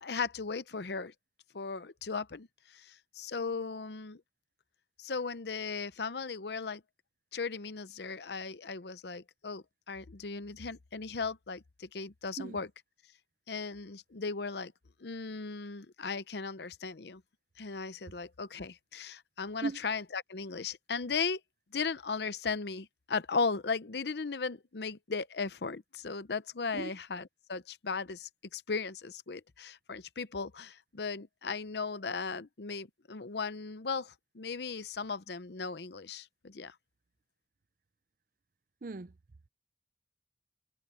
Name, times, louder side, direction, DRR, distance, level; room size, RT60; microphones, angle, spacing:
voice 1, 0.0-1.1 1.5-2.5 2.7-4.2 5.0-6.8 7.3-12.7 13.5-14.7 15.0-17.2 17.6-21.4 21.7-27.2 27.5-36.7, left 4 dB, 65° left, 0.7 m, -37 dB
voice 2, 38.8-39.1, right 3 dB, 50° right, 0.5 m, -37 dB
head